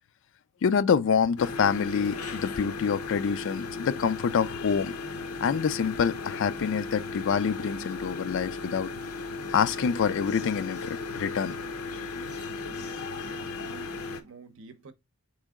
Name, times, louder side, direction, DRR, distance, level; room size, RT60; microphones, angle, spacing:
voice 1, 0.6-4.9 5.4-8.9 9.5-11.5, left 6 dB, 60° left, 0.4 m, -26 dB
sound 1, 1.4-14.2, left 3 dB, 85° left, 0.7 m, -36 dB
voice 2, 12.7-14.9, right 4 dB, 65° right, 0.8 m, -50 dB
4.5 x 3.2 x 3.5 m
head